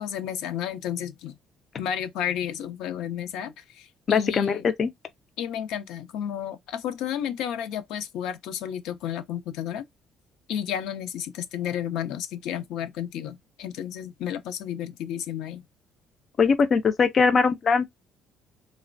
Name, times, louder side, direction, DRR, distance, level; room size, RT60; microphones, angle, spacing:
voice 1, 0.0-1.3 1.8-4.7 5.4-9.8 10.5-15.6, left 9 dB, 80° left, 0.5 m, -32 dB
voice 2, 4.1-4.9 16.4-17.9, left 5 dB, 30° left, 0.3 m, -21 dB
3.1 x 2.1 x 2.4 m
cardioid pair, 165°, 0 cm